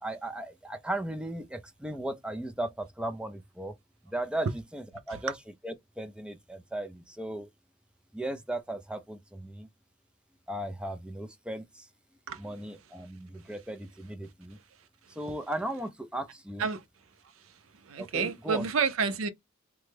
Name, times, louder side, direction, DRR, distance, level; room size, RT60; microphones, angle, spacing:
voice 1, 0.0-3.8 4.0-5.4 5.6-7.5 8.1-9.7 10.5-11.9 12.4-14.6 15.1-16.7 18.0-18.7, right 1 dB, 5° right, 0.3 m, -36 dB
voice 2, 17.8-19.3, right 5 dB, 85° right, 0.5 m, -29 dB
3.3 x 2.1 x 3.2 m
head